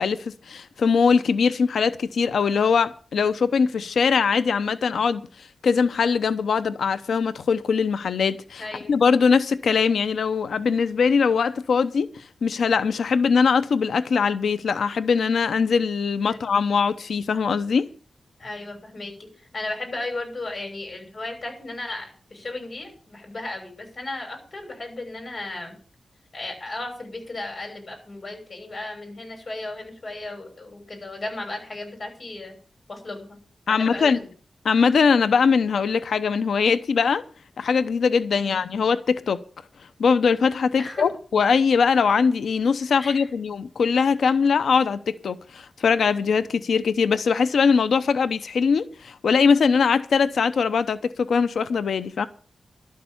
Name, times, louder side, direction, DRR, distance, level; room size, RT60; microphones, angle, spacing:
voice 1, 0.0-17.9 33.7-34.2 34.6-37.2 37.6-39.4 40.0-52.3, left 5 dB, 85° left, 0.8 m, -21 dB
voice 2, 8.6-9.0 16.3-16.4 18.4-25.7 26.3-32.5 32.9-33.4 33.7-34.1 38.4-38.6 40.8-41.0 43.0-43.3, left 2 dB, 40° left, 6.3 m, -35 dB
12.0 x 6.7 x 8.7 m
wide cardioid pair, 115°, 0 cm